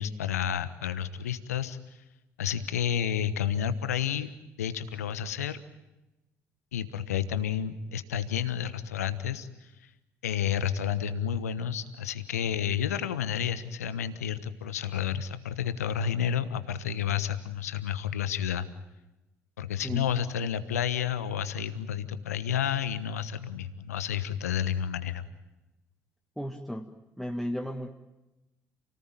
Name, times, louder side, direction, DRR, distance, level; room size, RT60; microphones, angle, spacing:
voice 1, 0.0-2.0 2.4-4.3 4.6-5.6 6.7-9.9 10.2-18.7 19.6-25.2, left 9 dB, 80° left, 13 dB, 1.2 m, -30 dB
voice 2, 26.4-27.9, equal, ahead, 2 dB, 1.9 m, -35 dB
29.5 x 18.5 x 9.0 m, 1.0 s
figure-of-eight pair, 50°, 8 cm